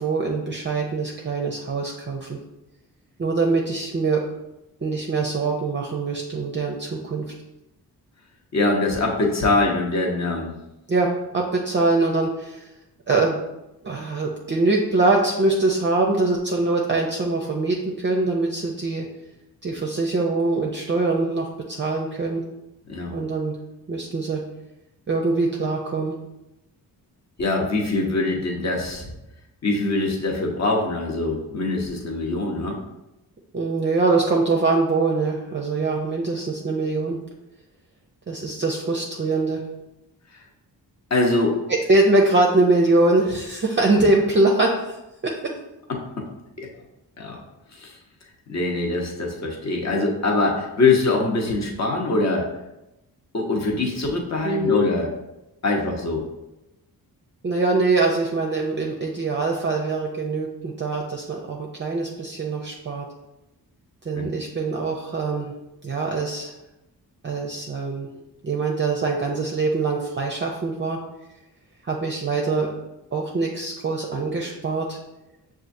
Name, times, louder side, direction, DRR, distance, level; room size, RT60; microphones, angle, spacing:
voice 1, 0.0-2.4 3.2-4.3 4.8-7.2 10.9-12.6 13.1-13.4 13.8-19.0 19.6-22.4 23.1-23.5 23.9-24.4 25.1-26.2 33.5-37.2 38.3-39.6 41.7-44.7 45.2-45.5 54.4-54.8 57.4-63.0 64.1-65.5 65.8-66.5 67.2-68.1 68.4-71.0 71.8-72.8 73.1-75.0, right 3 dB, 30° right, 0 dB, 0.5 m, -23 dB
voice 2, 8.5-10.5 22.9-23.2 27.4-29.1 29.6-32.8 40.3-40.4 41.1-41.6 44.0-44.1 45.9-46.2 46.6-46.7 47.2-47.4 47.7-48.0 48.5-52.5 53.3-55.1 55.6-56.2 64.1-64.3, left 3 dB, 40° left, 0 dB, 1.0 m, -23 dB
6.0 x 2.5 x 2.6 m, 0.94 s
cardioid pair, 70°, 40 cm